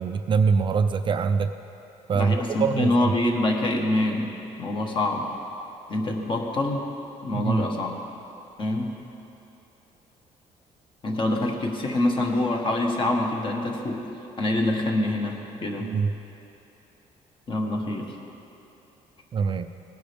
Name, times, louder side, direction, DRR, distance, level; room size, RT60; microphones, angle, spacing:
voice 1, 0.0-1.5 2.1-3.1 7.3-7.6 15.8-16.1 19.3-19.7, right 5 dB, 35° right, 8 dB, 0.4 m, -24 dB
voice 2, 2.1-4.3 4.6-5.3 5.9-6.8 7.2-7.9 8.6-8.9 11.0-14.0 14.4-15.9 17.5-18.1, left 1 dB, 35° left, 2 dB, 1.4 m, -25 dB
18.5 x 10.5 x 3.5 m, 3.0 s
cardioid pair, 135°, 14 cm